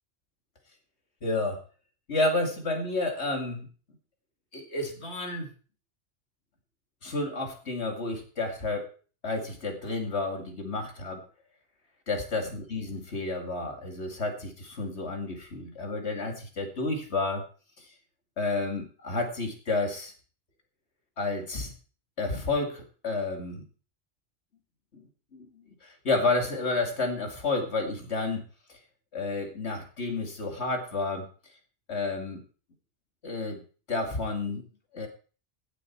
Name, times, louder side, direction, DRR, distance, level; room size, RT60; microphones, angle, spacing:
voice 1, 1.2-1.6 2.1-3.7 4.5-5.5 7.0-8.9 9.2-11.2 12.1-17.4 17.8-17.9 18.4-20.1 21.2-21.7 22.2-23.6 24.9-25.0 25.3-28.4 29.1-31.3 31.9-32.4 33.2-33.6 33.9-34.6 34.9-35.1, left 3 dB, 70° left, 4 dB, 2.7 m, -30 dB
16.5 x 8.3 x 4.5 m, 0.38 s
omnidirectional pair, 1.2 m